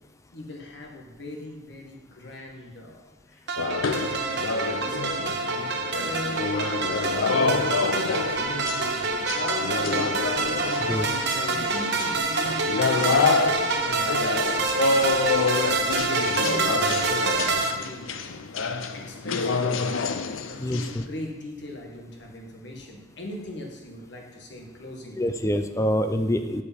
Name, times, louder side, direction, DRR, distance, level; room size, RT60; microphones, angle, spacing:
voice 1, 0.3-11.2 11.5-14.4 15.3-18.3 18.9-20.0 20.4-25.2, left 1 dB, 60° left, 2 dB, 1.5 m, -41 dB
sound 1, 3.5-17.7, right 3 dB, 60° right, 0.9 m, -27 dB
sound 2, 3.6-21.0, left 4 dB, 85° left, 0.6 m, -27 dB
voice 2, 20.6-21.0 25.2-26.6, equal, 15° left, 7 dB, 0.4 m, -25 dB
8.4 x 5.0 x 7.3 m, 1.2 s
head